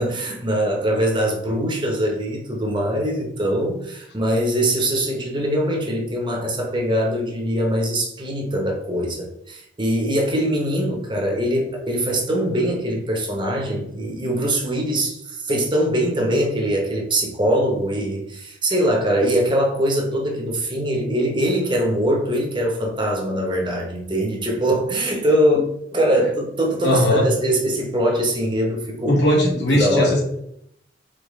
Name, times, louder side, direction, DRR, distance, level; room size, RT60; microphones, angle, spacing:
voice 1, 0.0-25.7 25.9-29.2 29.5-30.1, equal, 25° right, 0 dB, 1.0 m, -22 dB
voice 2, 26.8-27.3 29.1-30.2, left 1 dB, 65° left, -1 dB, 1.3 m, -18 dB
4.9 x 3.0 x 3.2 m, 0.74 s
head